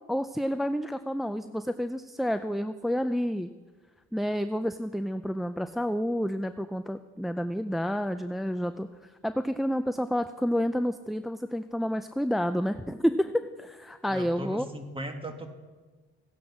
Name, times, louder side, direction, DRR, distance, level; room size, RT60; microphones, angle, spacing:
voice 1, 0.1-3.5 4.1-14.7, equal, ahead, 9 dB, 0.4 m, -29 dB
voice 2, 14.1-15.5, right 1 dB, 20° right, 5 dB, 1.9 m, -38 dB
16.0 x 10.5 x 6.0 m, 1.4 s
cardioid pair, 90°, 30 cm